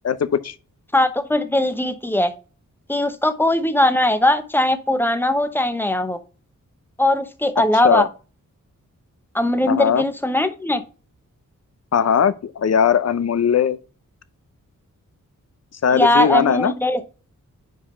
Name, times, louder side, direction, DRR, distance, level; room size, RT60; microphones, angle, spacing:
voice 1, 0.0-0.5 7.8-8.1 9.7-10.0 11.9-13.8 15.8-16.7, left 7 dB, 55° left, 0.7 m, -19 dB
voice 2, 0.9-2.3 2.9-6.2 7.0-8.1 9.3-10.8 15.9-17.0, left 1 dB, 5° left, 0.9 m, -19 dB
5.4 x 4.9 x 5.3 m
cardioid pair, 75°, 31 cm